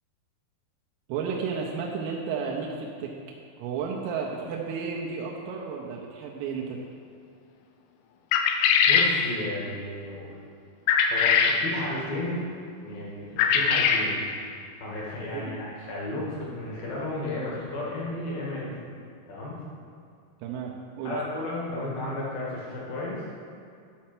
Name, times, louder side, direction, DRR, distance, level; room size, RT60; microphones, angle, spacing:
voice 1, 1.1-3.1 3.6-6.8 15.3-15.6 20.4-21.2, right 5 dB, 90° right, -2 dB, 3.4 m, -32 dB
sound 1, 8.3-9.1 10.9-11.6 13.4-14.1, left 7 dB, 85° left, 3.2 m, -21 dB
voice 2, 8.9-10.3 11.1-12.4 12.8-14.2 14.8-18.8 19.3-19.6 21.0-23.2, left 2 dB, 60° left, -5 dB, 2.7 m, -33 dB
12.0 x 4.4 x 5.9 m, 2.3 s
omnidirectional pair, 5.9 m